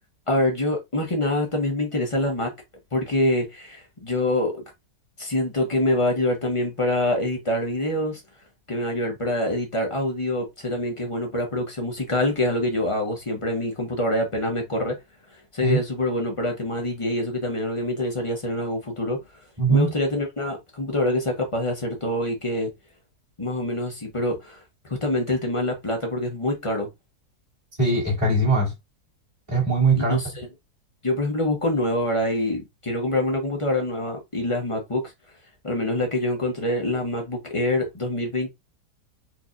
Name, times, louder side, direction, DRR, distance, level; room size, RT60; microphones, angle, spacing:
voice 1, 0.3-2.5 2.9-4.6 5.2-8.2 8.7-14.9 15.5-19.2 19.7-22.7 23.4-26.9 30.0-30.5 31.0-35.1 35.6-38.5, left 1 dB, 30° left, 0.6 m, -25 dB
voice 2, 19.6-19.9 27.8-28.7 29.5-30.2, right 3 dB, 25° right, 2.4 m, -20 dB
4.5 x 2.6 x 2.4 m
omnidirectional pair, 1.8 m